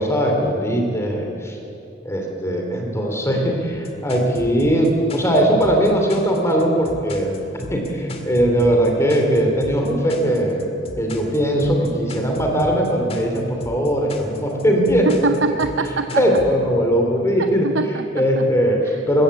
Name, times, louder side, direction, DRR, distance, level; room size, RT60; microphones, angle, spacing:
voice 1, 0.0-1.6 2.0-7.4 7.7-10.7 11.0-15.4 16.2-17.7 18.1-19.2, equal, 15° left, 1 dB, 2.8 m, -19 dB
sound 1, 3.7-16.5, left 1 dB, 35° left, 1.9 m, -35 dB
voice 2, 15.1-16.2 17.6-18.5 18.8-19.0, right 3 dB, 80° right, 7 dB, 0.8 m, -24 dB
21.5 x 15.0 x 8.2 m, 2.8 s
head